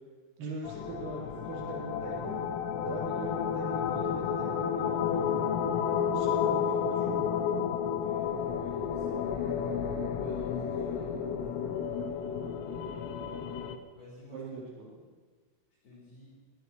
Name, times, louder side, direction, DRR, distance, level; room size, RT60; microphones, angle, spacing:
voice 1, 0.4-1.2 1.4-2.4 2.8-5.6 6.1-7.2 14.3-14.9, right 3 dB, 85° right, -7 dB, 6.7 m, -41 dB
sound 1, 0.6-13.8, left 7 dB, 85° left, 3.5 m, -31 dB
voice 2, 1.0-1.4 7.8-9.6 10.1-12.6 13.9-14.4 14.8-15.0 15.8-16.3, left 1 dB, 55° left, -6 dB, 5.9 m, -53 dB
22.5 x 18.5 x 3.2 m, 1.5 s
omnidirectional pair, 5.8 m